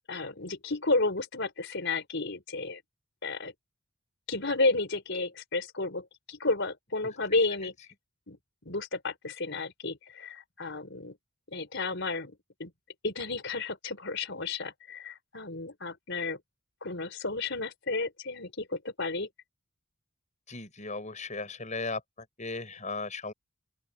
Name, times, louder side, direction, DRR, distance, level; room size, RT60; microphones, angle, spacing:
voice 1, 0.1-2.8 3.2-3.5 4.3-7.7 8.3-8.4 8.6-11.2 11.5-12.3 12.6-12.7 13.0-16.4 16.8-19.3, left 3 dB, 55° left, 5.1 m, -32 dB
voice 2, 20.5-22.0 22.4-23.3, left 3 dB, 35° left, 7.8 m, -36 dB
open air
head